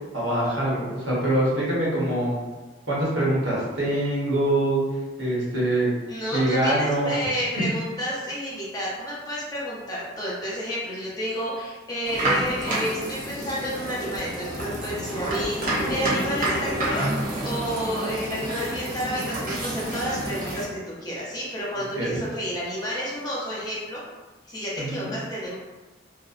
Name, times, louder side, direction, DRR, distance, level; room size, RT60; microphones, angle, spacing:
voice 1, 0.1-2.4 2.9-4.8 5.2-5.9 6.3-7.4 22.0-22.1 24.8-25.1, right 1 dB, 90° right, -6 dB, 0.9 m, -24 dB
voice 2, 6.1-24.0 24.4-25.6, equal, 20° left, -7 dB, 0.6 m, -30 dB
sound 1, 12.0-20.6, right 1 dB, 45° right, 0.6 m, -29 dB
2.5 x 2.0 x 2.4 m, 1.2 s
head